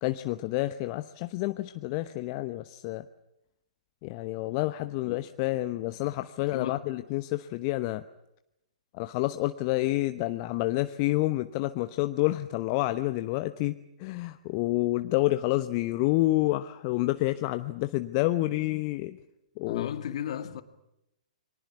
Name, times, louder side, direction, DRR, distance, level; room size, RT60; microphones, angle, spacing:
voice 1, 0.0-3.0 4.0-8.0 8.9-19.2 19.6-19.9, left 18 dB, 35° left, 1.0 m, -29 dB
voice 2, 19.7-20.6, left 10 dB, 55° left, 2.0 m, -34 dB
29.5 x 24.0 x 6.0 m
figure-of-eight pair, 115°, 4 cm